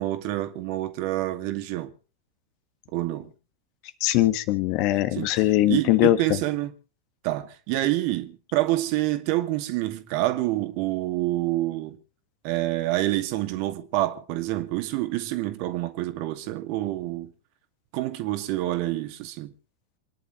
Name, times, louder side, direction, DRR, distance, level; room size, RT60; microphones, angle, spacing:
voice 1, 0.0-1.9 2.9-3.3 5.1-5.3 5.7-6.7 7.2-12.0 12.4-17.3 17.9-19.5, right 16 dB, 45° right, 2.3 m, -27 dB
voice 2, 4.0-6.2, left 15 dB, 45° left, 1.5 m, -21 dB
28.0 x 11.0 x 3.2 m
figure-of-eight pair, 90°, 0 cm